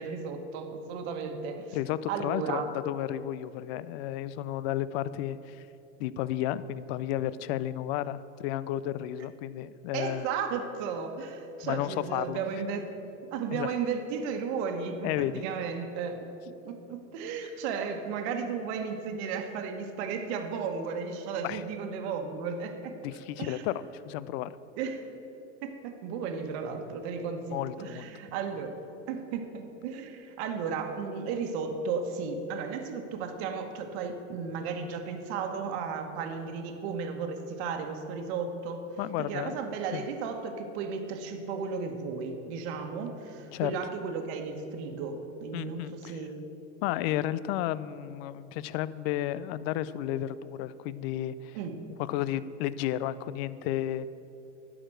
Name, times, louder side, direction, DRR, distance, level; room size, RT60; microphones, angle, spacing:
voice 1, 0.0-1.8 2.1-2.7 9.9-12.9 13.3-16.2 16.6-23.0 23.4-23.7 24.8-25.0 25.6-28.8 29.1-38.8 39.2-46.4 51.5-51.8, right 5 dB, 60° right, 5 dB, 1.3 m, -34 dB
voice 2, 1.7-5.7 6.0-10.3 11.6-12.4 13.5-13.7 15.0-15.4 21.4-21.6 23.0-24.5 27.5-28.1 39.0-39.5 39.9-40.1 43.5-43.7 45.5-46.2 46.8-51.6 52.0-54.1, left 13 dB, 55° left, 16 dB, 0.5 m, -32 dB
11.0 x 5.0 x 7.7 m, 2.9 s
supercardioid pair, 120°, 36 cm